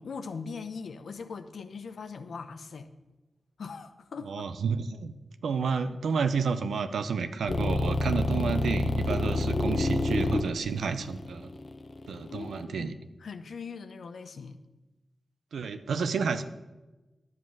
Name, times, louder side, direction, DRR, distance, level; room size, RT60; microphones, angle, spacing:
voice 1, 0.0-2.9 3.6-4.5 12.2-14.6, left 5 dB, 80° left, 9 dB, 0.7 m, -41 dB
voice 2, 4.3-5.1 5.4-11.5 12.1-12.9 15.5-16.4, right 5 dB, 85° right, 10 dB, 0.6 m, -30 dB
sound 1, 7.5-12.6, left 2 dB, 55° left, 0.9 m, -28 dB
11.0 x 7.4 x 6.2 m, 1.1 s
cardioid pair, 40°, 0 cm